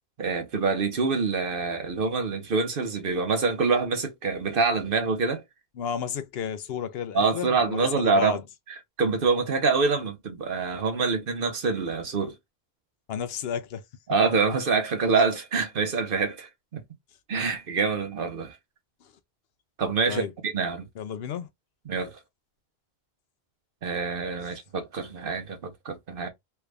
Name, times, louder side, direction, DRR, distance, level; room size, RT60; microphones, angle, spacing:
voice 1, 0.2-5.4 7.1-8.4 8.7-12.3 14.1-16.8 17.3-18.6 19.8-20.9 21.9-22.2 23.8-26.3, right 4 dB, 60° right, 1.1 m, -26 dB
voice 2, 5.8-8.4 13.1-13.8 20.1-20.3 21.0-21.5, left 8 dB, 75° left, 0.8 m, -32 dB
3.4 x 2.3 x 3.2 m
omnidirectional pair, 1.1 m